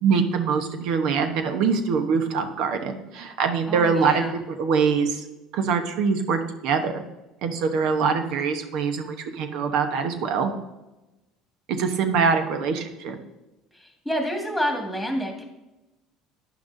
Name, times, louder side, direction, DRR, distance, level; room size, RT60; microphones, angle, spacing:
voice 1, 0.0-5.2 5.5-7.0 7.4-10.5 11.7-13.2, right 5 dB, 70° right, 7 dB, 1.0 m, -24 dB
voice 2, 3.7-4.4 13.7-15.4, equal, 5° left, 2 dB, 1.9 m, -28 dB
10.0 x 5.9 x 2.7 m, 1.0 s
supercardioid pair, 85°, 0 cm